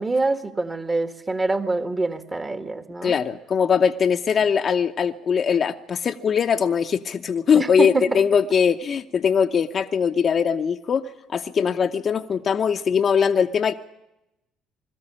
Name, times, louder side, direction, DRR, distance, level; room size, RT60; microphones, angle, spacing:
voice 1, 0.0-3.2 7.6-8.2, right 3 dB, 25° right, 7 dB, 1.6 m, -25 dB
voice 2, 3.0-11.0 11.3-13.7, left 7 dB, 50° left, 6 dB, 0.8 m, -21 dB
21.5 x 13.5 x 10.0 m, 0.95 s
hypercardioid pair, 60°, 0 cm